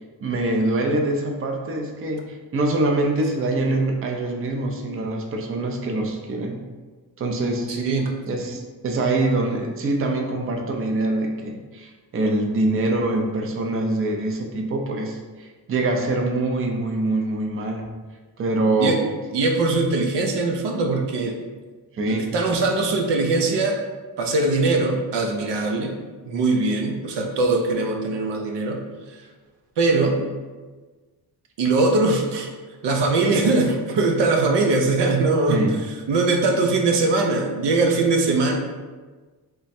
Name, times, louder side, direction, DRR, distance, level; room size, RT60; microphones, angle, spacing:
voice 1, 0.2-6.6 7.2-7.8 8.3-17.9 18.4-19.0 21.9-22.3 35.5-35.8, right 2 dB, 35° right, 2 dB, 0.5 m, -24 dB
voice 2, 7.7-8.2 18.8-19.1 19.3-21.3 22.1-23.8 24.2-25.9 26.2-28.8 29.1-29.2 29.8-30.3 31.6-32.5 32.8-35.6 36.1-38.6, right 3 dB, 90° right, 2 dB, 0.6 m, -21 dB
3.2 x 2.2 x 4.1 m, 1.3 s
cardioid pair, 105°, 41 cm